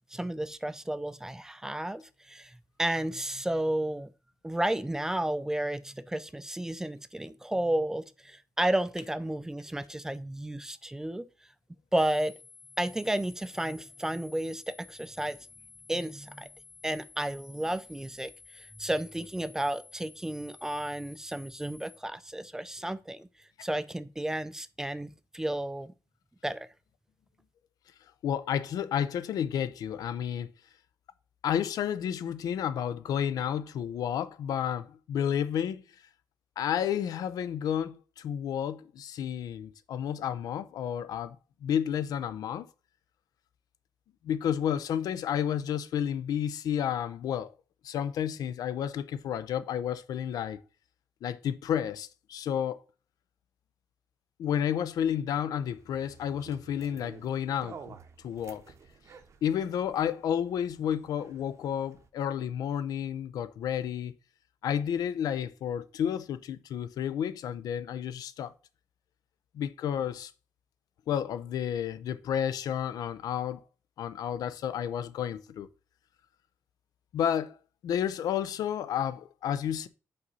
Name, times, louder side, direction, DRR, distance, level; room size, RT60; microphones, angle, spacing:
voice 1, 0.1-2.5 2.8-4.1 4.4-11.3 11.9-12.4 12.8-15.4 15.9-16.5 16.8-23.3 23.6-25.9 26.4-26.7, right 1 dB, 10° right, 0.4 m, -32 dB
sound 1, 12.0-22.0, left 4 dB, 30° left, 0.8 m, -53 dB
voice 2, 28.2-30.5 31.4-35.8 36.6-41.4 41.6-42.7 44.2-47.5 47.8-50.6 51.2-52.8 54.4-57.9 58.2-58.6 59.4-64.1 64.6-68.5 69.5-70.3 71.1-73.6 74.0-75.7 77.1-77.6 77.8-79.9, left 9 dB, 85° left, 0.6 m, -31 dB
sound 2, 55.6-62.1, right 6 dB, 50° right, 0.8 m, -52 dB
5.5 x 4.1 x 5.5 m
wide cardioid pair, 140°, 6 cm